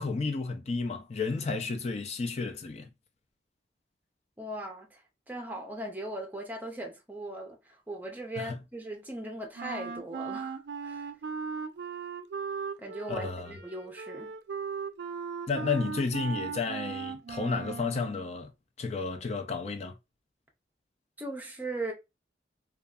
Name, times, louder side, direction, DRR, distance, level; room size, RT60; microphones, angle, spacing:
voice 1, 0.0-2.9 8.4-8.6 13.1-13.5 15.5-18.5 18.8-19.9, left 4 dB, 40° left, 0.4 m, -32 dB
voice 2, 4.4-5.0 5.3-11.1 12.8-14.3 21.2-21.9, right 1 dB, 10° right, 0.6 m, -39 dB
Wind instrument woodwind instrument, 9.6-18.2, right 6 dB, 80° right, 0.4 m, -38 dB
2.6 x 2.3 x 2.3 m
head